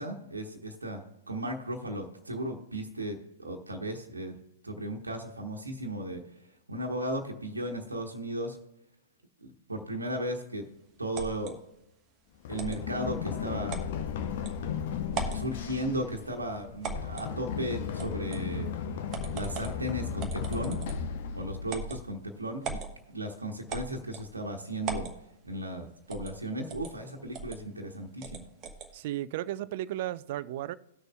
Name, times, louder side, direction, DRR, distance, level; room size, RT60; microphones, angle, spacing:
voice 1, 0.0-4.3 4.6-6.2 6.7-8.6 9.4-10.6 11.0-11.6 12.5-13.8 15.3-18.7 19.3-20.8 21.3-22.8 23.1-25.1 25.4-28.4, right 1 dB, 80° right, 1.2 m, -35 dB
sound 1, 11.1-11.5 12.6-12.8 13.7-13.9 14.5-14.6 15.1-15.5 16.8-17.3 18.0-18.4 19.1-19.8 20.2-21.1 21.7-22.0 22.6-22.9 23.7-24.3 24.8-25.2 26.1-26.4 26.7-26.9 27.3-27.6 28.2-28.9, right 4 dB, 25° right, 1.2 m, -38 dB
Run, 12.4-22.2, left 7 dB, 45° left, 0.7 m, -35 dB
voice 2, 28.9-30.8, right 13 dB, 45° right, 0.4 m, -34 dB
18.5 x 6.6 x 2.3 m
figure-of-eight pair, 110°, 0 cm